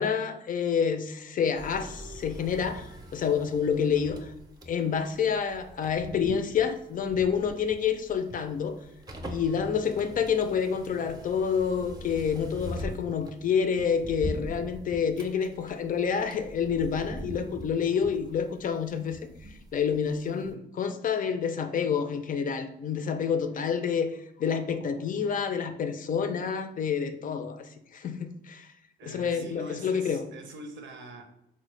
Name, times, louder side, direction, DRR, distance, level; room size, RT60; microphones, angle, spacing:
voice 1, 0.0-4.3 4.7-8.8 9.3-19.2 19.5-28.7 29.0-30.2, left 7 dB, 45° left, 0.4 m, -28 dB
sound 1, 1.5-20.2 20.4-20.5, equal, 20° right, 0.5 m, -42 dB
voice 2, 29.0-31.2, right 1 dB, 70° right, 0.6 m, -43 dB
3.9 x 2.1 x 3.1 m
cardioid pair, 90°, 20 cm